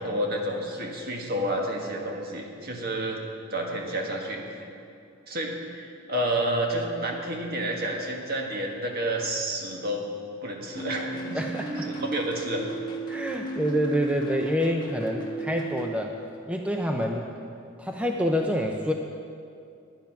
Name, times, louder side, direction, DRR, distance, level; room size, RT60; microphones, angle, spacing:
voice 1, 0.0-3.2 3.5-4.6 5.3-10.1 10.4-11.4 11.8-12.6, right 1 dB, 50° right, 0 dB, 1.6 m, -30 dB
sound 1, 10.7-15.9, right 2 dB, 20° left, 1.3 m, -35 dB
voice 2, 11.3-11.9 13.1-16.1 16.5-17.3 17.8-18.9, equal, 5° right, 2 dB, 0.5 m, -27 dB
10.5 x 10.5 x 5.9 m, 2.5 s
head